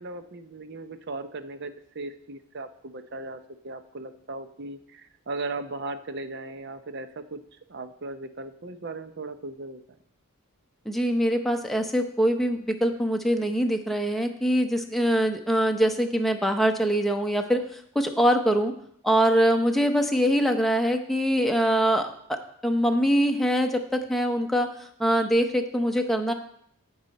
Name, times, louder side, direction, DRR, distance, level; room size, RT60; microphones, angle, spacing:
voice 1, 0.0-7.4 7.7-9.8, right 2 dB, 50° right, 10 dB, 0.7 m, -37 dB
voice 2, 10.9-18.7 19.0-22.4 22.6-24.7 25.0-26.3, equal, ahead, 4 dB, 0.7 m, -23 dB
15.5 x 5.5 x 4.1 m, 0.69 s
head